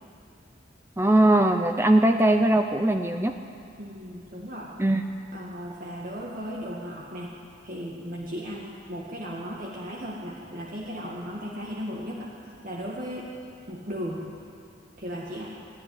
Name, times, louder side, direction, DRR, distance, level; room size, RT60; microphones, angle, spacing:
voice 1, 1.0-3.3 4.8-5.0, right 1 dB, 15° right, 6 dB, 0.6 m, -20 dB
voice 2, 3.8-4.7 5.3-7.4 7.6-13.3 13.7-14.3 15.0-15.5, equal, 45° right, -3 dB, 2.0 m, -36 dB
27.5 x 11.0 x 9.7 m, 2.5 s
head